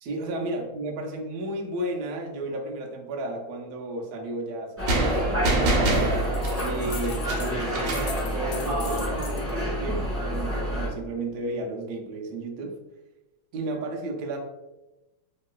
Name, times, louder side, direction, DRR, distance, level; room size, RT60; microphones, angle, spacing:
voice 1, 0.0-6.1 6.6-12.8 13.5-14.4, right 2 dB, 90° right, 0 dB, 0.8 m, -33 dB
sound 1, 4.8-10.9, equal, 10° left, 1.0 m, -28 dB
sound 2, 4.9-8.2, right 2 dB, 70° right, 1.1 m, -26 dB
sound 3, 6.2-7.5 7.8-9.5, left 7 dB, 85° left, 1.4 m, -41 dB
3.0 x 2.9 x 2.3 m, 1.0 s
omnidirectional pair, 2.2 m